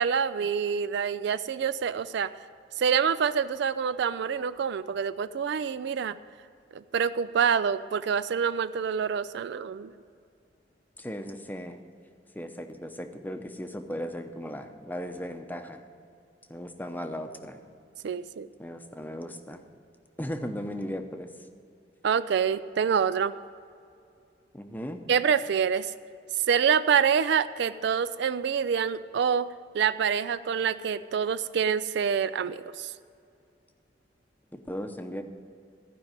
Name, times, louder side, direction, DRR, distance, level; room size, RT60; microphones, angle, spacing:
voice 1, 0.0-2.3 2.8-6.2 6.7-9.9 18.0-18.5 22.0-23.3 25.1-25.9 26.5-29.5 29.7-32.9, right 7 dB, 65° right, 14 dB, 0.4 m, -26 dB
voice 2, 11.0-11.8 12.3-15.8 16.5-17.6 18.6-19.6 20.2-21.3 24.5-25.0 34.5-35.2, equal, 10° left, 6 dB, 0.7 m, -37 dB
15.0 x 5.3 x 8.8 m, 2.4 s
head